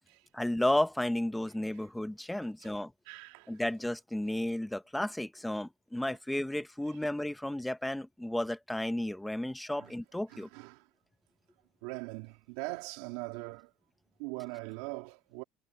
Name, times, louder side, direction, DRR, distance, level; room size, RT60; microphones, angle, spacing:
voice 1, 0.3-2.9 3.5-10.5, left 1 dB, 5° left, 0.9 m, -33 dB
voice 2, 3.1-3.5 6.1-6.2 9.8-9.9 10.3-10.9 11.8-13.7 14.2-15.4, right 24 dB, 70° right, 3.5 m, -41 dB
cardioid pair, 165°, 0 cm